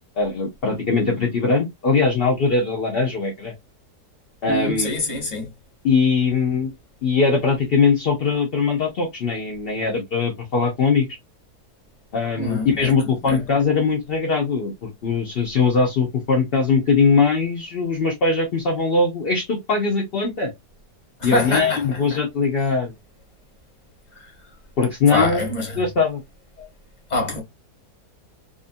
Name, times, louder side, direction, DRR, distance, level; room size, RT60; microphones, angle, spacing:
voice 1, 0.2-3.5 4.4-4.9 5.8-6.7 7.0-11.1 12.1-20.5 21.2-22.9 24.8-25.5 25.8-26.2, left 4 dB, 65° left, 0.5 m, -21 dB
voice 2, 4.5-5.5 12.4-12.9 13.3-13.4 21.2-22.2 24.2-24.3 25.1-25.8 27.1-27.4, left 2 dB, 30° left, 0.9 m, -25 dB
2.8 x 2.5 x 2.5 m
omnidirectional pair, 1.8 m